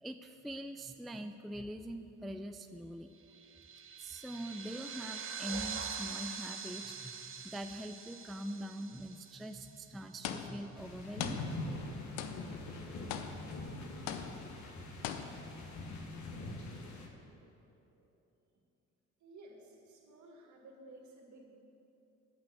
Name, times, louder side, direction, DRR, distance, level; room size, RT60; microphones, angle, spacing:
voice 1, 0.0-3.1 4.0-11.4, equal, ahead, 7 dB, 0.3 m, -43 dB
sound 1, 3.3-10.1, right 6 dB, 40° right, 0.8 m, -44 dB
sound 2, 10.2-10.8 11.2-11.9 12.2-12.7 13.1-13.7 14.1-14.6 15.0-15.6, left 8 dB, 75° left, 0.7 m, -41 dB
sound 3, 10.8-17.1, left 2 dB, 55° left, 1.4 m, -43 dB
voice 2, 19.2-21.5, right 2 dB, 55° right, 1 dB, 1.8 m, -55 dB
8.4 x 5.8 x 7.7 m, 2.9 s
hypercardioid pair, 60°, 34 cm